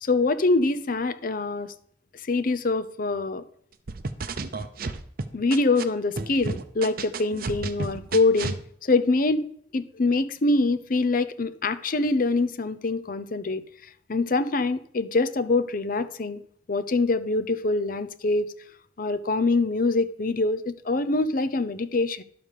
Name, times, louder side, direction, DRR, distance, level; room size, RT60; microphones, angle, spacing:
voice 1, 0.0-1.7 2.3-3.4 5.3-8.6 8.8-13.6 14.1-16.4 16.7-18.5 19.0-22.2, left 3 dB, 50° left, 0.6 m, -24 dB
sound 1, 3.9-5.8 6.2-8.6, right 3 dB, 50° right, 0.7 m, -31 dB
11.0 x 5.4 x 6.6 m
head